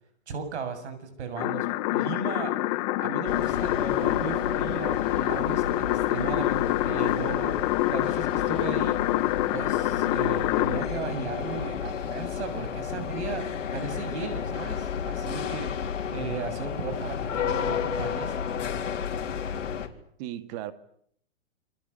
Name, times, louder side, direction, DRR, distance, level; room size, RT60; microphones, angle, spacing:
voice 1, 0.3-2.5 3.0-7.6 7.9-9.0 9.5-18.4, right 4 dB, 60° right, 10 dB, 7.7 m, -36 dB
sound 1, 1.4-10.9, left 18 dB, 30° left, 1.3 m, -27 dB
sound 2, 3.2-19.9, left 7 dB, 75° left, 4.1 m, -32 dB
voice 2, 20.2-20.7, right 13 dB, 30° right, 12 dB, 2.1 m, -37 dB
29.0 x 24.0 x 8.3 m, 0.68 s
hypercardioid pair, 150°, 38 cm